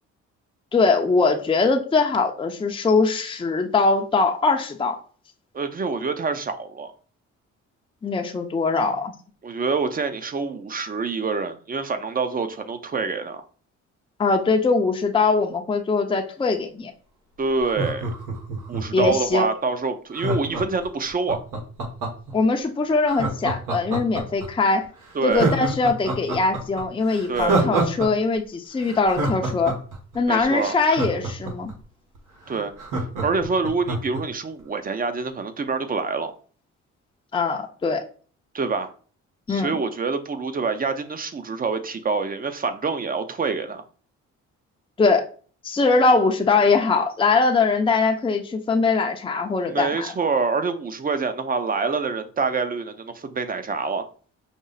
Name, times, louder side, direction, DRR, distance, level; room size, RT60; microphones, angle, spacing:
voice 1, 0.7-5.0 8.0-9.1 14.2-16.9 18.9-19.5 22.3-24.9 25.2-29.7 30.1-31.7 37.3-38.0 39.5-39.8 45.0-45.2 45.6-50.1, left 4 dB, 15° left, 0.5 m, -21 dB
voice 2, 5.5-6.9 9.4-13.4 17.4-18.1 18.7-21.4 25.1-25.6 27.3-27.7 30.3-30.8 32.5-36.3 38.5-38.9 39.5-43.8 49.7-54.1, right 4 dB, 30° right, 0.6 m, -26 dB
Laughter, 17.6-19.3 20.1-22.3 23.1-24.5 24.8-24.9 25.3-28.1 28.3-28.4 28.8-31.7 32.2-32.3 32.5-34.2 34.6-34.7, right 2 dB, 85° right, 1.3 m, -27 dB
5.2 x 2.0 x 3.9 m
cardioid pair, 90°, 30 cm